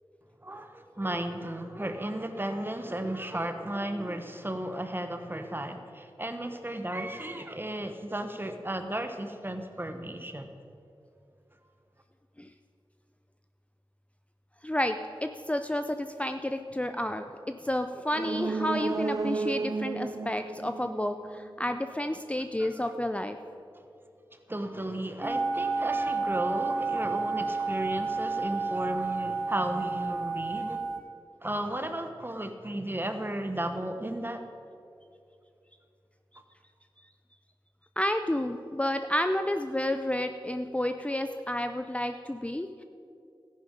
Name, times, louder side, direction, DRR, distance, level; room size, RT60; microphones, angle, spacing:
voice 1, 0.4-10.5 22.6-22.7 24.5-30.8 31.4-34.4, right 1 dB, 25° right, 7 dB, 1.2 m, -34 dB
voice 2, 14.6-23.4 38.0-42.8, left 1 dB, 15° left, 7 dB, 0.5 m, -30 dB
sound 1, 18.1-21.8 22.1-22.2, right 4 dB, 40° right, 0.4 m, -33 dB
sound 2, 25.2-31.0, right 4 dB, 5° right, 3.4 m, -30 dB
13.5 x 10.5 x 5.2 m, 2.6 s
cardioid pair, 45°, 9 cm